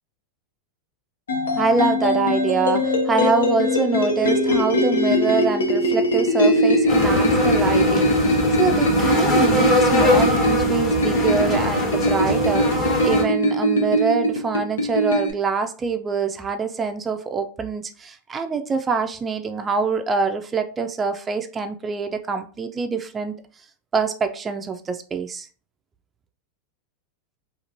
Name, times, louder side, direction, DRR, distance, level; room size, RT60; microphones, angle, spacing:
sound 1, 1.3-15.3, equal, 85° left, 0.6 m, -21 dB
voice 1, 1.6-23.4 23.9-25.5, right 4 dB, 20° right, 0.3 m, -25 dB
sound 2, 6.9-13.2, left 2 dB, 35° left, 1.1 m, -22 dB
2.9 x 2.5 x 2.6 m
hypercardioid pair, 95°, 0 cm